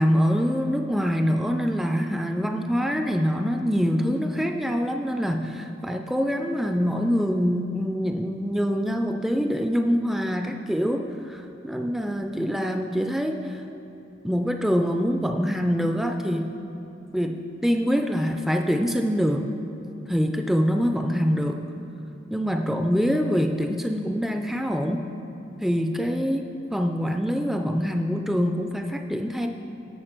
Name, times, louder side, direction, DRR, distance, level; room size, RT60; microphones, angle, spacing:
voice 1, 0.0-13.6 14.2-16.5 17.1-19.5 20.1-21.6 22.3-25.0 25.6-29.5, equal, ahead, 4 dB, 0.3 m, -25 dB
17.5 x 6.5 x 4.4 m, 2.9 s
head